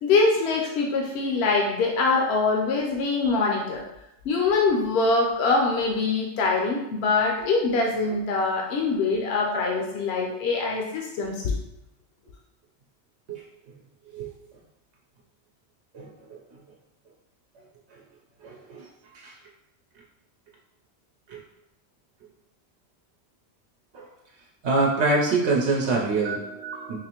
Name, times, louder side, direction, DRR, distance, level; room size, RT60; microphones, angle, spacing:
voice 1, 0.0-3.8 4.2-11.6, left 3 dB, 75° left, 0 dB, 0.8 m, -23 dB
voice 2, 15.9-16.4 17.9-18.0 18.4-18.9 19.1-19.4 21.3-21.4 23.9-24.1 24.6-27.0, right 3 dB, 85° right, -2 dB, 0.9 m, -25 dB
4.1 x 2.6 x 2.8 m, 0.86 s
omnidirectional pair, 1.1 m